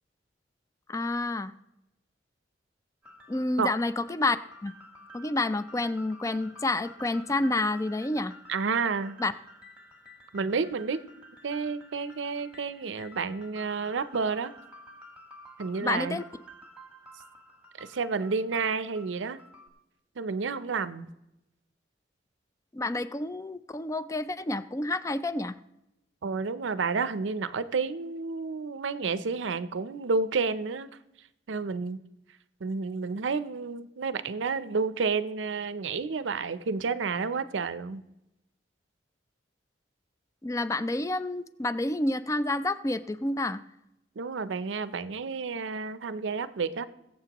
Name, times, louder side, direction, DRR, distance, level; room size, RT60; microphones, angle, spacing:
voice 1, 0.9-1.5 3.3-4.7 5.1-8.3 9.2-9.3 15.8-16.2 22.7-25.5 40.4-43.6, left 2 dB, 15° left, 13 dB, 0.4 m, -29 dB
sound 1, 3.0-19.7, equal, 5° right, 1.3 m, -51 dB
voice 2, 8.5-9.2 10.3-11.0 11.4-14.5 15.6-16.2 17.8-19.4 20.2-21.1 26.2-30.9 31.5-32.0 32.6-38.0 44.2-46.9, right 4 dB, 85° right, 14 dB, 0.5 m, -30 dB
21.5 x 7.6 x 2.9 m, 0.89 s
head